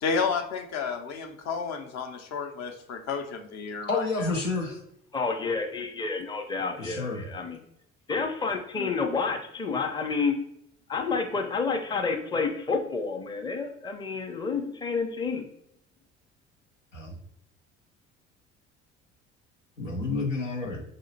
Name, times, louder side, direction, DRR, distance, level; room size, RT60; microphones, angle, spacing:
voice 1, 0.0-4.4, left 5 dB, 45° left, 5 dB, 0.7 m, -31 dB
voice 2, 3.9-4.8 6.8-7.2 16.9-17.2 19.8-20.8, left 3 dB, 90° left, 0 dB, 0.7 m, -29 dB
voice 3, 5.1-7.6 8.1-10.4 10.9-15.5, left 4 dB, 10° left, 4 dB, 0.6 m, -29 dB
5.1 x 2.8 x 2.7 m, 0.77 s
figure-of-eight pair, 55°, 37 cm